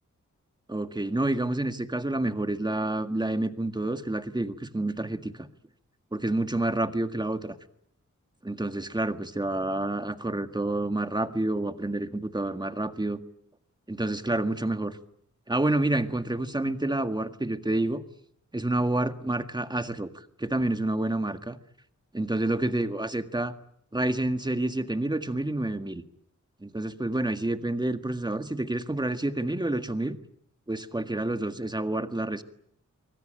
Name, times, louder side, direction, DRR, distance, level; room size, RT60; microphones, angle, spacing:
voice 1, 0.7-5.5 6.1-7.6 8.4-13.2 13.9-15.0 15.5-18.0 18.5-21.6 22.1-23.5 23.9-26.0 26.6-30.2 30.7-32.4, right 2 dB, 15° right, 9 dB, 1.8 m, -28 dB
25.0 x 24.5 x 8.9 m, 0.70 s
wide cardioid pair, 145°, 30 cm